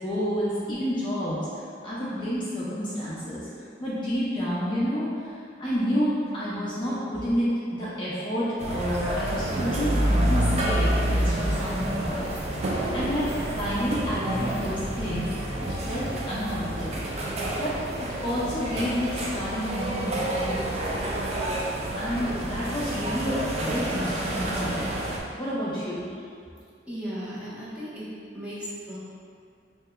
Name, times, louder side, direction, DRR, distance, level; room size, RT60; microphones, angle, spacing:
voice 1, 0.0-3.5 3.8-12.3 12.9-15.3 15.9-17.1 17.6-17.8 18.2-21.0 21.9-24.9 25.3-26.1, equal, 25° left, -9 dB, 0.5 m, -29 dB
sound 1, 8.6-25.2, right 1 dB, 35° right, 0.4 m, -28 dB
voice 2, 26.9-28.1 28.3-29.0, equal, 5° right, -11 dB, 0.8 m, -36 dB
4.5 x 2.8 x 2.2 m, 2.3 s
head